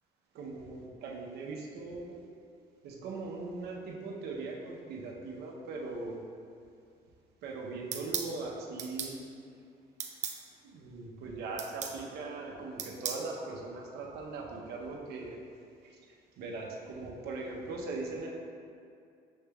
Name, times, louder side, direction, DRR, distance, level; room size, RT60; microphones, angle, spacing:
voice 1, 0.3-2.3 2.8-6.2 7.4-9.2 10.6-15.4 16.4-18.3, right 3 dB, 75° right, -1 dB, 0.7 m, -40 dB
sound 1, 7.9-8.3 8.8-9.1 10.0-10.4 11.6-12.0 12.8-13.2, right 7 dB, 45° right, 0.4 m, -36 dB
6.3 x 3.3 x 2.3 m, 2.3 s
cardioid pair, 110°, 17 cm